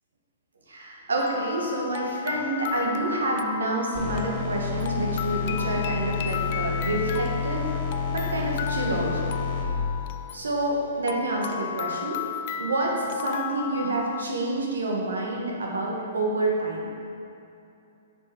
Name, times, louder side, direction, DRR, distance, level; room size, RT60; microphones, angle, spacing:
voice 1, 0.7-7.7 8.1-9.3 10.3-16.9, right 2 dB, 85° right, -2 dB, 1.5 m, -28 dB
sound 1, 1.2-14.2, left 9 dB, 45° left, 0.3 m, -35 dB
sound 2, 3.9-9.6, left 5 dB, 20° left, 1.4 m, -29 dB
6.9 x 5.1 x 4.5 m, 2.6 s
hypercardioid pair, 140°, 0 cm